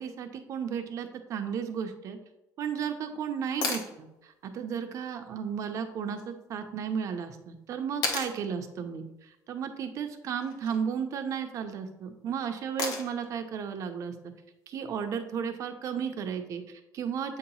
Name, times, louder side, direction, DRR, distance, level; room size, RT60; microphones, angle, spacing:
voice 1, 0.0-2.2 2.6-9.0 9.5-14.3 14.7-17.4, right 7 dB, 50° right, 6 dB, 0.8 m, -34 dB
sound 1, 3.6-3.9 6.2-6.3 8.0-8.4 10.4-10.8 12.8-13.3 15.4-15.5, left 3 dB, 65° left, 1.1 m, -32 dB
8.0 x 2.9 x 5.5 m, 0.95 s
cardioid pair, 155°, 7 cm